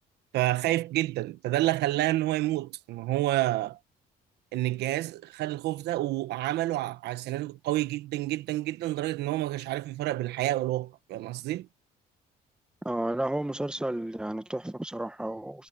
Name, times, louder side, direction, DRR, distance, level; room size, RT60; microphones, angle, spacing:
voice 1, 0.3-3.8 4.5-11.7, right 16 dB, 80° right, 1.2 m, -29 dB
voice 2, 12.8-15.7, right 1 dB, 5° right, 1.3 m, -32 dB
cardioid pair, 110°, 17 cm